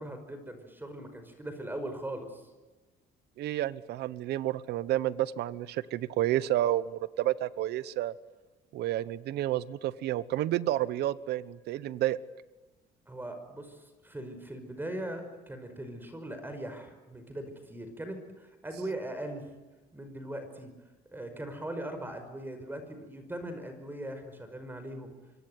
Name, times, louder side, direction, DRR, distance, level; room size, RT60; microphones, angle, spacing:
voice 1, 0.0-2.5 13.1-19.5 19.9-20.7 21.1-25.1, right 1 dB, 10° right, 8 dB, 5.3 m, -40 dB
voice 2, 3.4-8.1 8.7-12.2, right 14 dB, 75° right, 17 dB, 1.1 m, -30 dB
25.5 x 24.0 x 9.4 m, 1.2 s
cardioid pair, 110°, 17 cm